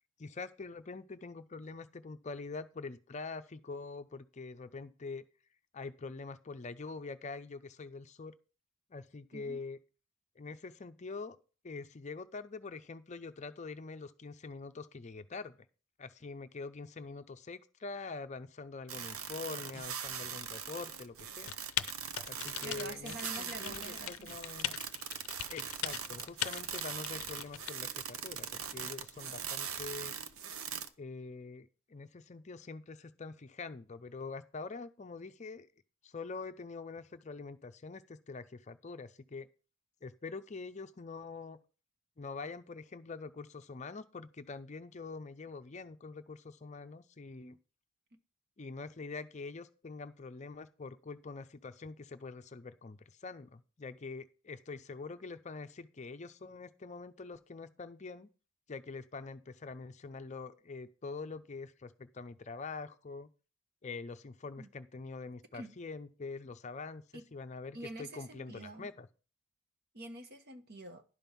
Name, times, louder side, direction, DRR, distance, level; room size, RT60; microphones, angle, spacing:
voice 1, 0.2-5.2 5.7-8.3 8.9-9.8 10.4-11.4 11.6-15.6 16.0-21.5 22.3-24.8 25.5-30.2 31.0-35.7 36.0-39.5 40.0-41.6 42.2-47.6 48.6-58.3 58.7-63.3 63.8-67.0 67.3-69.1, left 4 dB, 35° left, 0.5 m, -45 dB
sound 1, 18.9-30.9, right 7 dB, 80° right, 0.8 m, -41 dB
Typing, 21.5-27.7, left 12 dB, 90° left, 0.5 m, -40 dB
voice 2, 22.6-24.4 64.6-64.7 65.5-65.7 67.1-67.2 67.7-68.9 69.9-71.0, right 2 dB, 50° right, 1.2 m, -47 dB
11.0 x 5.4 x 5.9 m
head